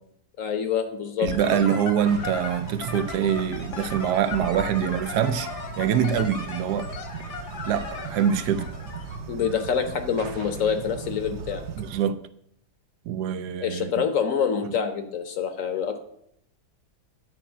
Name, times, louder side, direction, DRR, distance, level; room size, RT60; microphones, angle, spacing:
voice 1, 0.4-1.6 9.3-11.6 13.6-16.0, left 7 dB, 60° left, 1.1 m, -26 dB
voice 2, 1.2-5.5 5.8-6.9 7.7-8.7 11.8-12.2 13.1-13.9, right 8 dB, 80° right, 1.2 m, -24 dB
sound 1, 1.3-9.2, left 4 dB, 80° left, 2.1 m, -36 dB
sound 2, 2.1-12.0, right 6 dB, 60° right, 0.7 m, -38 dB
9.5 x 4.2 x 7.1 m
omnidirectional pair, 1.7 m